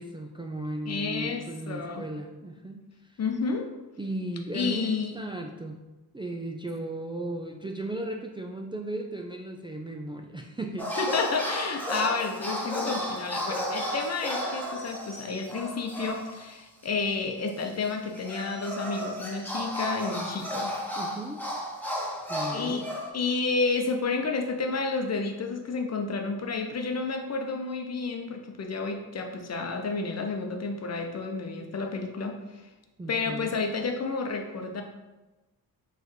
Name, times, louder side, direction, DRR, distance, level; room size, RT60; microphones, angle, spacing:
voice 1, 0.0-3.2 4.0-5.8 6.1-10.9 21.0-21.4 22.3-22.9 33.0-33.6, right 1 dB, 15° right, 2 dB, 0.3 m, -36 dB
voice 2, 0.8-2.0 3.2-3.7 4.5-5.1 11.0-20.7 22.5-22.8 23.1-32.6 33.1-34.8, left 4 dB, 40° left, 4 dB, 0.7 m, -30 dB
sound 1, 10.8-16.5 16.8-16.9 17.8-23.1, equal, 5° left, 1.1 m, -33 dB
4.4 x 3.3 x 3.1 m, 1.1 s
supercardioid pair, 55°, 40 cm